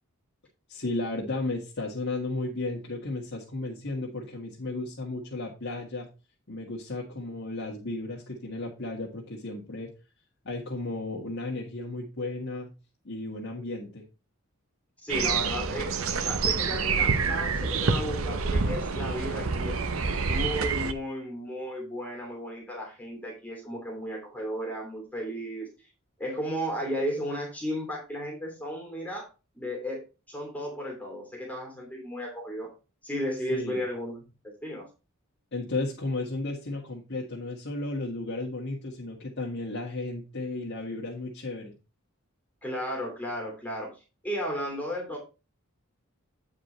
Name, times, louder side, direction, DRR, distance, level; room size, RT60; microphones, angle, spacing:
voice 1, 0.7-6.1 6.5-9.9 10.5-12.7 13.1-14.0 33.5-33.8 35.5-41.7, left 2 dB, 55° left, -3 dB, 1.8 m, -34 dB
voice 2, 15.0-19.8 20.3-25.7 26.2-29.3 29.5-32.7 33.0-34.9 42.6-44.0 44.2-45.2, equal, 5° left, 0 dB, 2.9 m, -34 dB
sound 1, 15.1-20.9, right 5 dB, 70° right, 0.8 m, -27 dB
9.5 x 5.0 x 4.3 m, 0.30 s
head